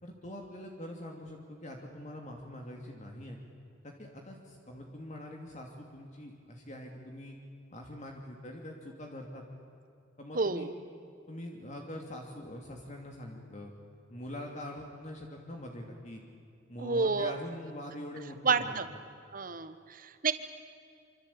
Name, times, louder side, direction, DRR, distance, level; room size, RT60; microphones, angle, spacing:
voice 1, 0.0-3.4 3.8-7.4 7.7-9.4 10.2-10.7 11.3-13.7 14.1-16.2 16.7-18.8, left 1 dB, 40° left, 1 dB, 2.8 m, -44 dB
voice 2, 10.3-10.7 16.8-17.3 18.4-18.8 19.3-20.3, right 4 dB, 45° right, 11 dB, 1.3 m, -29 dB
26.5 x 26.0 x 8.7 m, 2.5 s
head